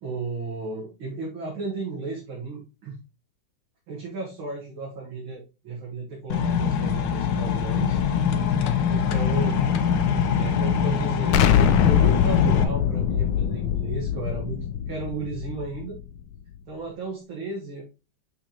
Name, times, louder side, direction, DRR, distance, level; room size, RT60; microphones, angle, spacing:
voice 1, 0.0-3.0 3.9-8.0 8.9-9.6 10.3-16.0 16.7-17.8, right 3 dB, 85° right, -3 dB, 2.5 m, -34 dB
sound 1, 6.3-12.6, left 7 dB, 70° left, 1.4 m, -23 dB
Explosion, 11.3-16.2, left 9 dB, 85° left, 1.5 m, -23 dB
6.6 x 6.5 x 2.9 m, 0.30 s
omnidirectional pair, 2.2 m